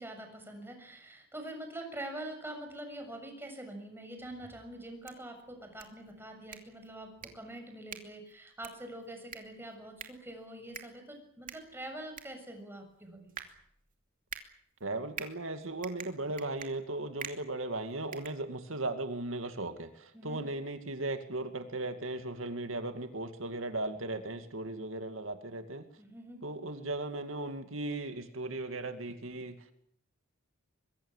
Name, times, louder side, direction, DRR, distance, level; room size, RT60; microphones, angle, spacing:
voice 1, 0.0-13.3 20.1-20.4 26.0-26.4, right 1 dB, 10° right, 4 dB, 7.0 m, -45 dB
sound 1, 4.8-19.0, right 7 dB, 40° right, 2.7 m, -49 dB
voice 2, 14.8-25.9 26.4-29.7, right 2 dB, 75° right, 7 dB, 2.4 m, -37 dB
24.5 x 23.0 x 7.5 m, 0.69 s
head